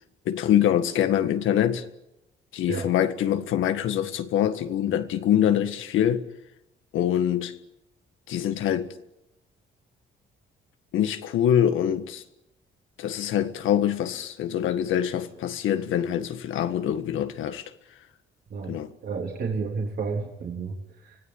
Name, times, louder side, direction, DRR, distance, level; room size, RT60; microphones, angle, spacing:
voice 1, 0.3-1.9 2.5-6.2 6.9-7.6 8.3-8.9 10.9-12.2 13.0-17.7 18.7-18.9, left 10 dB, 85° left, 1.7 m, -24 dB
voice 2, 19.0-21.2, right 4 dB, 55° right, 3.5 m, -31 dB
25.0 x 17.0 x 9.8 m
cardioid pair, 90°, 20 cm